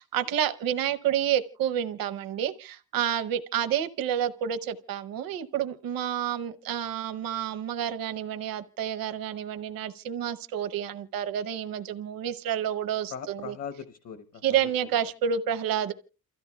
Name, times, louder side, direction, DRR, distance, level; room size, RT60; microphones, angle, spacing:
voice 1, 0.0-13.5 14.4-15.9, right 9 dB, 70° right, 0.8 m, -29 dB
voice 2, 13.1-14.6, left 7 dB, 50° left, 0.8 m, -39 dB
28.5 x 14.0 x 2.3 m
cardioid pair, 180°, 36 cm